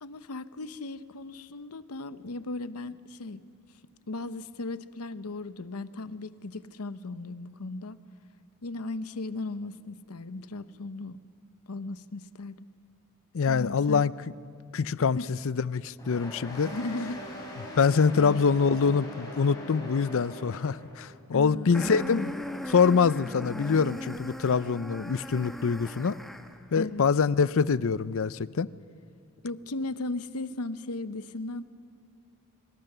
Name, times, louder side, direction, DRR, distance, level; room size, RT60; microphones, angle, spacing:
voice 1, 0.0-3.5 4.1-8.0 8.6-11.2 11.7-12.7 13.5-14.1 15.1-15.3 16.7-17.2 17.7-17.8 18.1-18.4 21.3-21.9 26.8-27.0 29.4-31.6, left 2 dB, 85° left, 13 dB, 0.8 m, -36 dB
voice 2, 13.3-14.1 14.7-16.7 17.8-22.4 22.7-26.2 26.7-28.7, left 5 dB, 65° left, 18 dB, 0.5 m, -25 dB
sound 1, 16.0-21.1, left 1 dB, 15° left, 6.6 m, -41 dB
sound 2, 21.7-26.6, equal, ahead, 1.0 m, -38 dB
24.0 x 24.0 x 6.8 m, 2.4 s
head